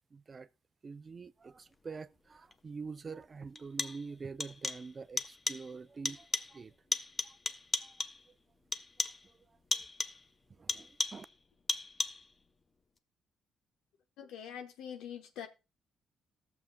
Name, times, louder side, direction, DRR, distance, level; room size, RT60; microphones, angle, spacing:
voice 1, 0.1-0.5 0.8-6.7 7.2-7.4 7.8-8.0 9.0-9.1 9.5-9.9 10.5-11.3, right 4 dB, 35° right, 0.4 m, -46 dB
sound 1, 2.5-2.6 3.5-4.1 4.4-4.9 5.2-5.7 6.0-6.6 6.9-8.3 8.7-9.3 9.7-10.3 10.7-11.3 11.7-12.3, left 3 dB, 25° left, 0.6 m, -36 dB
voice 2, 14.2-15.5, left 9 dB, 90° left, 1.0 m, -44 dB
18.5 x 7.0 x 2.2 m
cardioid pair, 90°, 0 cm